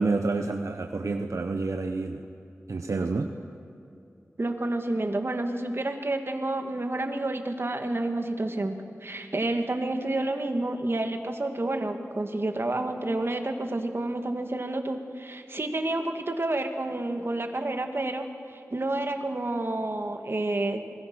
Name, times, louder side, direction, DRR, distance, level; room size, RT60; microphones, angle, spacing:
voice 1, 0.0-2.2 2.7-3.3, right 3 dB, 75° right, 5 dB, 1.0 m, -28 dB
voice 2, 4.4-20.9, right 2 dB, 50° right, 5 dB, 2.2 m, -29 dB
27.0 x 20.0 x 6.3 m, 2.6 s
wide cardioid pair, 50°, 5 cm